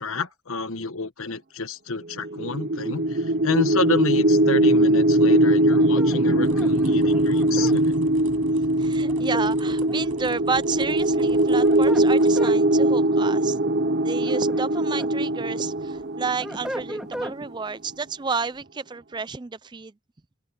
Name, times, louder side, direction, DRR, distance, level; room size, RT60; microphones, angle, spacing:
voice 1, 0.0-7.9, left 3 dB, 70° left, 1.3 m, -29 dB
sound 1, 2.2-17.2, right 1 dB, 45° right, 0.8 m, -21 dB
sound 2, 5.7-7.8 9.1-10.2 11.4-12.6 14.0-15.1 15.6-17.4, equal, 5° right, 2.0 m, -37 dB
sound 3, 6.4-12.4, right 4 dB, 80° right, 6.1 m, -49 dB
voice 2, 8.8-13.6 14.0-19.9, right 4 dB, 20° right, 0.4 m, -31 dB
open air
head